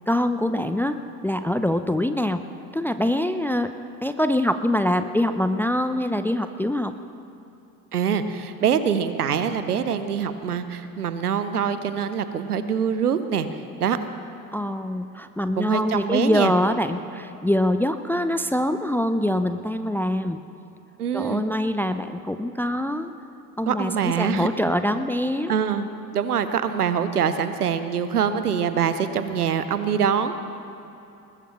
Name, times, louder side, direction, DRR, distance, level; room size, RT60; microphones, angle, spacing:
voice 1, 0.1-2.4 2.7-3.7 4.0-6.9 14.5-20.4 21.1-23.1 23.6-25.5, left 1 dB, 5° left, 10 dB, 0.5 m, -24 dB
voice 2, 7.9-13.5 13.8-14.0 15.6-16.5 21.0-21.4 23.7-24.5 25.5-25.9 26.1-30.3, right 7 dB, 85° right, 11 dB, 0.7 m, -24 dB
20.5 x 20.0 x 3.0 m, 2.9 s
figure-of-eight pair, 55°, 45 cm